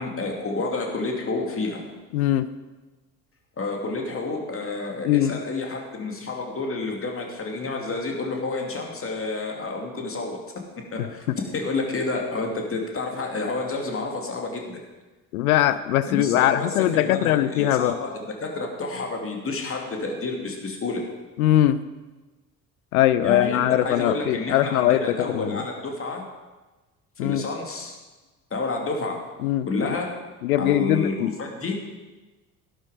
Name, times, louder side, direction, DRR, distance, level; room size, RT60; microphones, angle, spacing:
voice 1, 0.0-1.8 3.6-10.4 10.9-14.8 16.1-21.0 23.2-26.2 27.2-28.0 28.5-29.2 29.7-30.1 30.6-31.8, left 3 dB, 30° left, 1 dB, 2.7 m, -29 dB
voice 2, 2.1-2.5 5.0-5.4 11.0-11.1 15.3-18.0 21.4-21.8 22.9-25.6 27.2-27.4 29.4-29.7 30.4-31.3, left 13 dB, 65° left, 14 dB, 0.7 m, -21 dB
13.0 x 12.0 x 5.1 m, 1.2 s
figure-of-eight pair, 55°, 45 cm